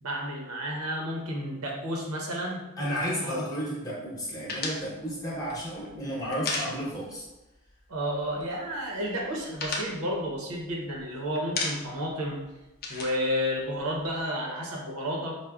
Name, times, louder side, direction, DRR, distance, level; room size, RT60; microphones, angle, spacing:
voice 1, 0.0-2.6 3.2-3.4 7.9-12.4 12.9-15.4, equal, 90° right, -1 dB, 0.8 m, -31 dB
voice 2, 2.8-7.3, equal, 15° left, -6 dB, 0.8 m, -32 dB
sound 1, 4.5-7.3 7.5-7.7 8.0-8.7 9.0-11.0 11.4-12.1 12.4-14.2, left 3 dB, 40° left, 0.5 m, -35 dB
5.0 x 2.1 x 2.3 m, 1.0 s
head